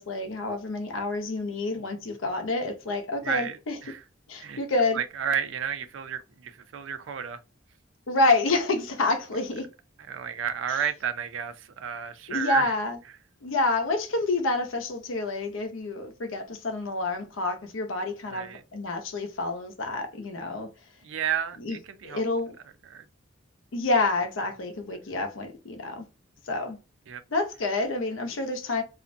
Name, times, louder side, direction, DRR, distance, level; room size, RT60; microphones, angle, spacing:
voice 1, 0.0-3.8 4.3-5.0 8.1-9.7 10.7-10.8 12.3-13.0 13.4-20.7 21.6-21.8 22.0-22.5 23.7-26.0 26.5-26.8 27.3-28.8, left 2 dB, 85° left, 0.6 m, -28 dB
voice 2, 3.2-3.6 3.8-4.0 4.4-4.6 4.9-7.4 10.1-12.7 18.3-18.6 21.0-22.2 22.9-23.0 27.1-27.2, right 8 dB, 80° right, 0.4 m, -31 dB
2.4 x 2.1 x 2.5 m
head